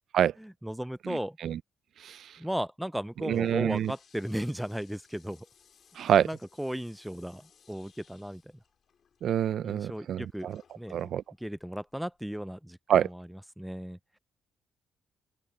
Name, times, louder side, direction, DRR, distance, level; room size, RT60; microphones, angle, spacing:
voice 1, 0.4-1.4 2.4-5.4 6.2-8.4 9.6-10.5 10.8-11.1 11.4-12.8 13.0-13.3 13.6-14.0, equal, 5° right, 0.5 m, -35 dB
voice 2, 1.0-1.6 2.0-2.3 3.2-3.9 6.0-6.3 9.2-10.6 10.9-11.2 12.9-13.1, right 10 dB, 65° right, 0.5 m, -27 dB
Toilet flush, 3.0-12.4, left 7 dB, 55° left, 5.0 m, -63 dB
open air
cardioid pair, 90°, 0 cm